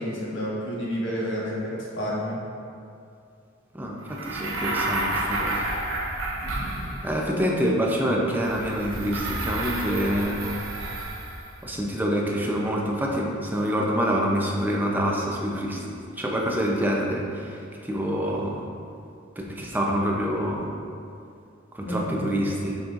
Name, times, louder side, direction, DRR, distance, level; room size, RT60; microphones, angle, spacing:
voice 1, 0.0-2.4 6.4-6.9 21.9-22.3, equal, 60° left, -6 dB, 1.4 m, -30 dB
voice 2, 3.7-5.6 7.0-10.5 11.6-15.8 16.2-18.6 19.4-20.7 21.7-22.8, equal, 10° right, -2 dB, 0.6 m, -26 dB
sound 1, 4.1-7.3 8.4-11.6, right 2 dB, 80° right, 0.8 m, -30 dB
7.3 x 5.5 x 2.5 m, 2.5 s
head